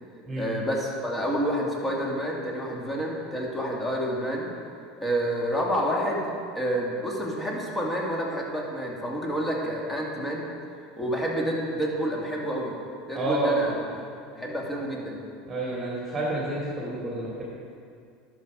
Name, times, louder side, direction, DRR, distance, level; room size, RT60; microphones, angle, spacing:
voice 1, 0.4-4.5 5.0-10.5 11.0-12.8 13.1-14.0 14.3-15.2, equal, 15° left, -2 dB, 2.2 m, -29 dB
voice 2, 13.1-13.6 15.5-17.4, right 2 dB, 15° right, -5 dB, 2.6 m, -29 dB
11.0 x 6.4 x 5.2 m, 2.4 s
hypercardioid pair, 75°, 0 cm